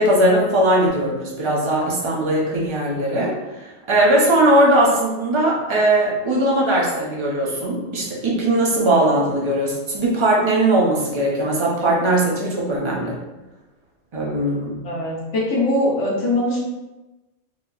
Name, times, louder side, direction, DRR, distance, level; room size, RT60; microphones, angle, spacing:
voice 1, 0.0-3.4 3.9-13.1 14.1-14.8, right 1 dB, 30° right, -4 dB, 0.6 m, -19 dB
voice 2, 14.8-16.6, left 1 dB, 60° left, -4 dB, 1.2 m, -21 dB
4.0 x 2.8 x 2.4 m, 1.0 s
omnidirectional pair, 1.4 m